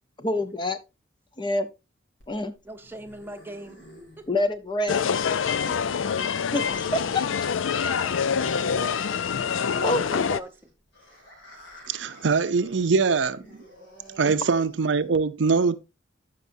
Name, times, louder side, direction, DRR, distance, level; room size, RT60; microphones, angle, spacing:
voice 1, 0.2-0.8 1.4-1.7 2.3-2.5 4.3-5.2 6.5-7.2 9.6-10.4 14.3-14.4, left 1 dB, 25° left, 0.7 m, -27 dB
sound 1, 2.2-15.2, equal, 60° left, 3.8 m, -50 dB
voice 2, 2.6-3.8 4.2-4.3 5.7-6.1 7.8-8.1 9.8-10.7, right 1 dB, 10° right, 0.9 m, -41 dB
sound 2, 4.9-10.4, left 6 dB, 85° left, 0.5 m, -26 dB
voice 3, 11.9-13.4 14.2-15.8, right 4 dB, 65° right, 0.5 m, -22 dB
13.5 x 5.4 x 2.6 m
head